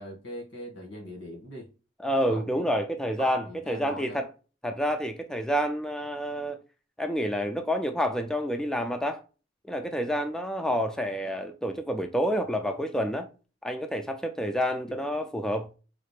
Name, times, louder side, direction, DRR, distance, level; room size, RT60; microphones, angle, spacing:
voice 1, 0.0-1.7 2.2-2.4 3.2-4.2 14.9-15.0, left 1 dB, 80° left, 1.7 m, -41 dB
voice 2, 2.0-4.3 4.6-6.6 7.0-9.2 9.6-13.3 13.6-15.7, equal, 5° left, 0.3 m, -28 dB
4.1 x 2.4 x 3.3 m
head